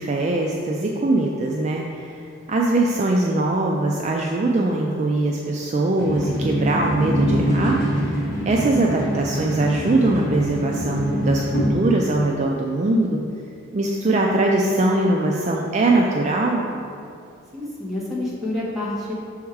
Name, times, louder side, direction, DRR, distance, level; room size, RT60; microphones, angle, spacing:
voice 1, 0.0-2.2 2.5-8.2 8.5-13.2 13.7-16.6, right 2 dB, 35° right, -1 dB, 0.3 m, -21 dB
sound 1, 6.0-11.7, equal, 55° left, 1.1 m, -24 dB
voice 2, 17.5-19.1, left 1 dB, ahead, -8 dB, 1.2 m, -28 dB
6.2 x 3.5 x 4.6 m, 2.5 s
head